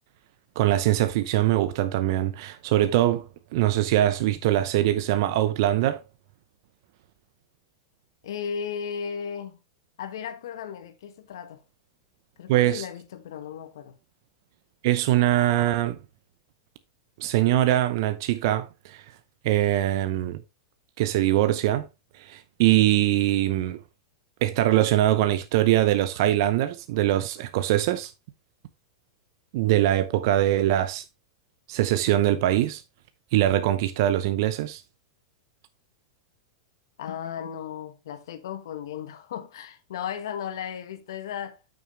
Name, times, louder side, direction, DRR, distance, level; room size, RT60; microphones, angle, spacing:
voice 1, 0.6-3.3 3.5-6.0 12.5-12.9 14.8-16.0 17.2-19.0 19.4-20.4 21.0-21.8 22.2-23.8 24.4-28.1 29.5-31.0 31.7-32.8 33.3-34.8, right 14 dB, 60° right, 0.7 m, -22 dB
voice 2, 8.2-9.6 10.0-11.6 12.4-14.0 37.0-41.6, left 8 dB, 70° left, 1.2 m, -35 dB
8.7 x 6.1 x 3.1 m
hypercardioid pair, 110°, 2 cm